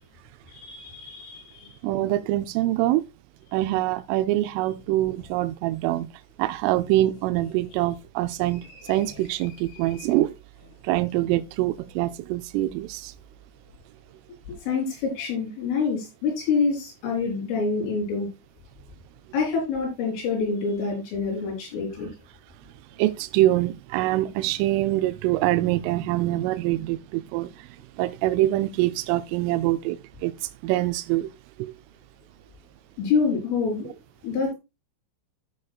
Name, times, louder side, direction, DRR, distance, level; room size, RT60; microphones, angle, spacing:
voice 1, 0.5-1.7 14.7-18.3 19.3-22.1 33.0-33.9 34.2-34.6, left 5 dB, 90° left, 6.9 m, -26 dB
voice 2, 1.8-3.0 3.5-6.1 6.4-8.6 8.9-10.3 10.9-13.1 23.0-27.5 28.0-30.0 30.2-30.3 30.6-31.3 31.6-31.7, right 15 dB, 90° right, 3.2 m, -24 dB
15.5 x 6.4 x 2.4 m
omnidirectional pair, 5.6 m